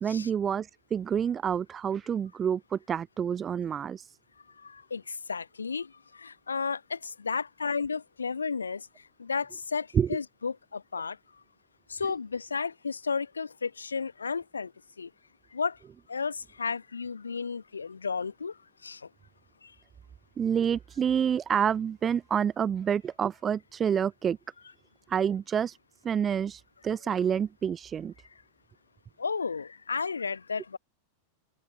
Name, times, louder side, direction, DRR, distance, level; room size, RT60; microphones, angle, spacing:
voice 1, 0.0-4.2 9.9-10.1 20.4-24.4 25.1-25.8 26.0-28.1, right 8 dB, 25° right, 0.4 m, -28 dB
voice 2, 4.6-11.2 11.9-14.7 15.0-15.1 15.5-15.8 16.1-19.1 19.6-19.7 27.0-27.1 29.2-30.8, left 5 dB, 75° left, 1.3 m, -33 dB
open air
figure-of-eight pair, 90°, 0 cm